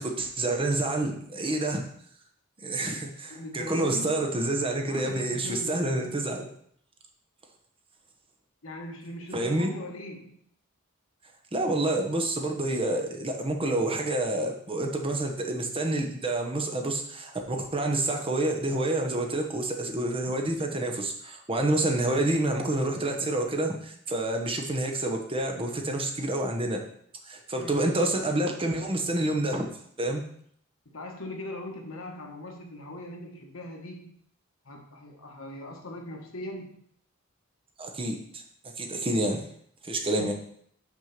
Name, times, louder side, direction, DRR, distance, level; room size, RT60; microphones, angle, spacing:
voice 1, 0.0-1.8 2.6-6.5 9.3-9.7 11.5-26.8 27.3-29.7 30.0-30.2 37.8-38.4 38.8-39.4 39.8-40.3, right 2 dB, 25° right, 3 dB, 1.0 m, -28 dB
voice 2, 3.3-4.3 4.8-5.9 8.6-10.4 27.5-27.8 30.8-34.1 34.6-36.8 40.2-40.3, left 1 dB, 80° left, 2 dB, 1.3 m, -40 dB
6.1 x 4.4 x 5.9 m, 0.65 s
head